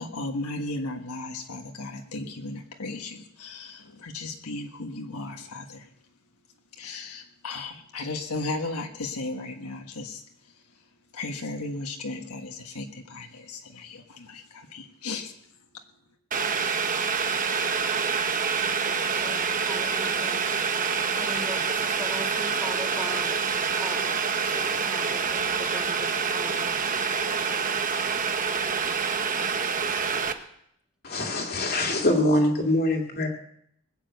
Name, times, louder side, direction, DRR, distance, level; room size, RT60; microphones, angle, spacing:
voice 1, 0.0-5.9 6.8-10.5 11.1-15.3, left 2 dB, 75° left, 3 dB, 1.5 m, -35 dB
Boiling, 16.3-30.3, right 5 dB, 35° right, 1.0 m, -27 dB
voice 2, 18.9-20.4 21.0-23.5 23.8-24.2 24.6-26.7, equal, 5° right, 2 dB, 1.7 m, -40 dB
voice 3, 31.0-33.3, left 1 dB, 45° left, 0 dB, 2.2 m, -24 dB
20.5 x 7.6 x 7.9 m, 0.72 s
head